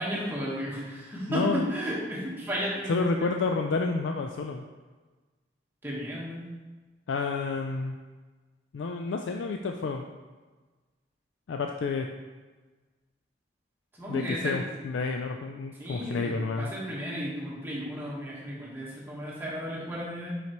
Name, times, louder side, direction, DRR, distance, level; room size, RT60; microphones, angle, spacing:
voice 1, 0.0-3.3 5.8-6.5 13.9-14.6 15.8-20.4, equal, 10° right, -6 dB, 1.3 m, -34 dB
voice 2, 1.3-1.7 2.9-4.6 7.1-8.0 8.7-10.0 11.5-12.1 14.1-16.7, left 4 dB, 90° left, 4 dB, 0.4 m, -30 dB
5.7 x 5.7 x 3.0 m, 1.3 s
head